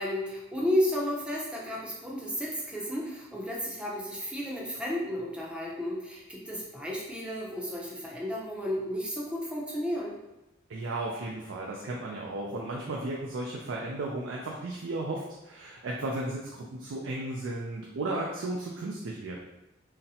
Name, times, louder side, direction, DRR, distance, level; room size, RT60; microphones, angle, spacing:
voice 1, 0.0-10.1, equal, 5° right, -4 dB, 0.6 m, -32 dB
voice 2, 10.7-19.5, right 2 dB, 80° right, -2 dB, 0.4 m, -34 dB
4.0 x 2.1 x 2.7 m, 0.95 s
head